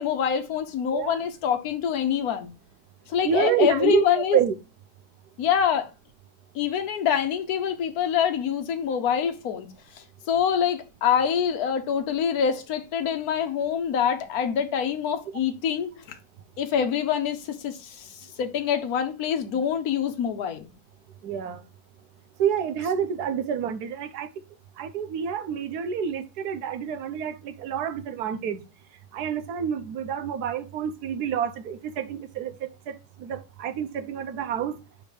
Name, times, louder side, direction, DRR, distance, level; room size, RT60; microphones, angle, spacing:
voice 1, 0.0-2.5 3.1-4.4 5.4-5.9 6.5-9.7 9.9-16.2 16.6-20.7, left 8 dB, 60° left, 1.3 m, -25 dB
voice 2, 0.9-1.3 3.2-4.5 21.2-21.6 22.4-24.3 24.8-28.6 29.1-34.8, right 7 dB, 70° right, 1.2 m, -28 dB
5.0 x 4.4 x 4.9 m
omnidirectional pair, 1.9 m